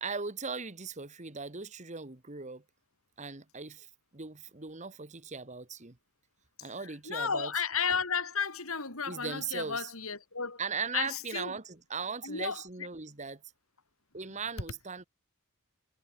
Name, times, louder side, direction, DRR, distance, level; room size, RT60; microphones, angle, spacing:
voice 1, 0.0-2.6 3.2-6.0 6.6-7.5 9.1-9.9 10.6-13.4 14.1-15.0, right 5 dB, 35° right, 1.6 m, -39 dB
voice 2, 7.1-10.6 10.9-11.5 12.2-12.6, left 6 dB, 70° left, 3.8 m, -33 dB
head